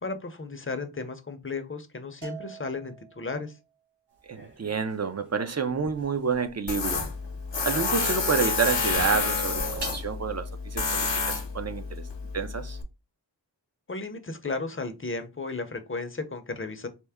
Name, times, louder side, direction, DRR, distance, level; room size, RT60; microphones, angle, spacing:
voice 1, 0.0-3.5 13.9-16.9, left 3 dB, 30° left, 0.6 m, -34 dB
Bell, 2.2-3.6, right 10 dB, 75° right, 1.6 m, -45 dB
voice 2, 4.3-7.0 7.6-12.1 12.3-12.8, right 5 dB, 35° right, 0.5 m, -29 dB
sound 1, 4.3-7.6 7.9-10.1, right 2 dB, 60° right, 1.4 m, -40 dB
Tools, 6.7-12.8, left 4 dB, 75° left, 0.8 m, -29 dB
4.4 x 2.1 x 3.4 m
wide cardioid pair, 60°, 44 cm